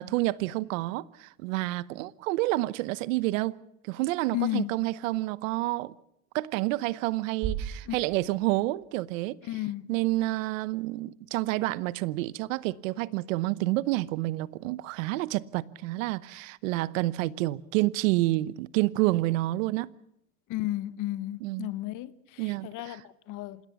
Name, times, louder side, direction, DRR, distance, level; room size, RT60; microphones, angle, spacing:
voice 1, 0.0-3.6 3.8-5.9 6.3-9.4 9.9-19.9 21.4-21.7 22.4-23.0, right 18 dB, 70° right, 1.0 m, -29 dB
voice 2, 4.3-4.7 7.9-8.0 9.5-9.9 20.5-23.6, left 15 dB, 50° left, 1.2 m, -33 dB
sound 1, 7.4-9.5, right 9 dB, 40° right, 6.3 m, -37 dB
27.5 x 17.0 x 7.2 m
supercardioid pair, 115°, 40 cm